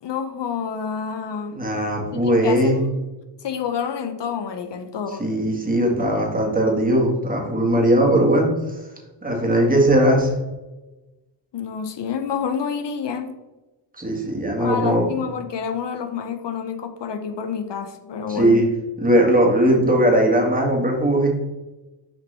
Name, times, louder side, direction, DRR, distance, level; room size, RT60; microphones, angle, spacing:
voice 1, 0.0-1.6 2.1-3.0 3.4-5.3 11.5-13.3 14.6-18.7, left 6 dB, 65° left, 7 dB, 0.7 m, -28 dB
voice 2, 1.5-2.8 5.2-8.8 9.2-10.3 13.9-15.1 18.3-18.6 19.0-21.3, right 1 dB, 20° right, -2 dB, 1.7 m, -19 dB
6.5 x 5.1 x 3.4 m, 1.1 s
wide cardioid pair, 105°, 45 cm